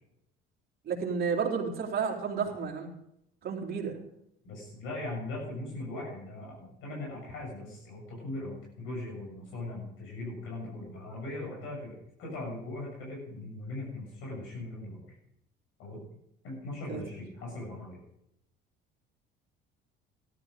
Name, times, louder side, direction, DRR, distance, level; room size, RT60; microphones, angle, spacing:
voice 1, 0.9-2.9 3.4-4.0 16.9-17.0, right 6 dB, 45° right, -1 dB, 3.5 m, -31 dB
voice 2, 4.4-11.9 12.2-15.2 15.8-16.0 16.4-18.0, left 2 dB, 70° left, -2 dB, 7.0 m, -39 dB
14.0 x 12.5 x 5.1 m, 0.78 s
supercardioid pair, 95°, 21 cm